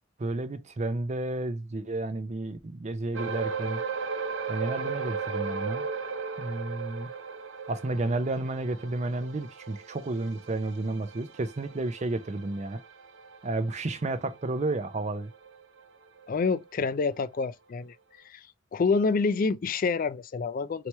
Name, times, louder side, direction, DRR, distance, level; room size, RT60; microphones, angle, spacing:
voice 1, 0.2-3.8 4.5-5.9 6.4-7.1 7.7-12.8 13.4-15.3, right 2 dB, 35° right, 0.5 m, -31 dB
sound 1, 3.1-15.8 16.2-16.4 16.9-17.0, right 5 dB, 85° right, 0.6 m, -37 dB
voice 2, 16.3-17.9 18.2-18.4 18.7-20.9, left 4 dB, 45° left, 0.4 m, -27 dB
3.0 x 2.8 x 4.5 m
head